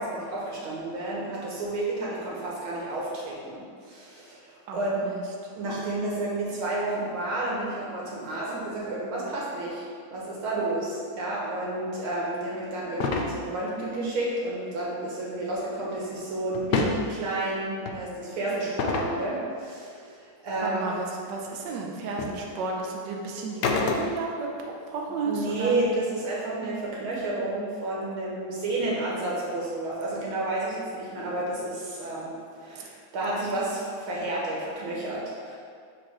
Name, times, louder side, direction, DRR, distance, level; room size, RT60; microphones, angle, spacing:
voice 1, 0.0-5.0 5.5-9.8 10.1-20.9 25.2-35.6, right 2 dB, 85° right, -5 dB, 2.3 m, -31 dB
voice 2, 4.7-5.2 20.6-25.8, right 3 dB, 65° right, 0 dB, 1.2 m, -33 dB
sound 1, 13.0-13.3 16.5-17.0 17.9-18.0 18.8-19.2 21.5-21.6 22.2-22.4 23.6-24.3, left 4 dB, 65° left, 1.1 m, -26 dB
5.1 x 4.4 x 6.0 m, 2.1 s
omnidirectional pair, 2.2 m